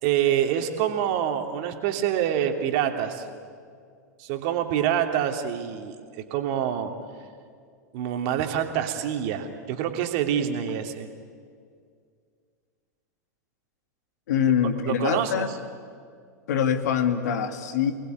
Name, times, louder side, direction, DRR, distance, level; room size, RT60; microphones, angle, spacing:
voice 1, 0.0-3.3 4.2-6.9 7.9-11.1 14.9-15.4, right 10 dB, 55° right, 5 dB, 2.9 m, -26 dB
voice 2, 14.3-15.5 16.5-17.9, left 8 dB, 70° left, 8 dB, 2.2 m, -24 dB
29.0 x 19.5 x 9.5 m, 2.1 s
hypercardioid pair, 95°, 10 cm